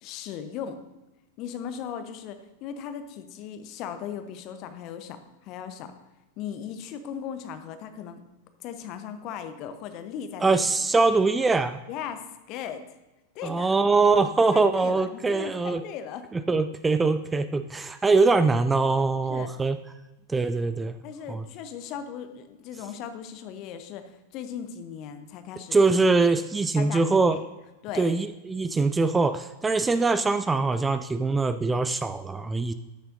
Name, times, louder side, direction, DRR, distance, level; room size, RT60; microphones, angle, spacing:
voice 1, 0.0-0.8 1.4-5.9 6.4-8.2 8.6-10.5 11.9-12.8 13.3-13.7 14.5-16.2 19.3-19.5 21.0-25.8 26.8-27.4 27.8-28.2, left 8 dB, 40° left, 9 dB, 0.8 m, -37 dB
voice 2, 10.4-11.8 13.4-15.8 16.3-19.8 20.3-21.0 21.3-21.4 25.7-27.4 28.0-32.7, right 3 dB, 10° right, 11 dB, 0.3 m, -23 dB
13.0 x 6.8 x 2.6 m, 1.1 s
figure-of-eight pair, 90°, 0 cm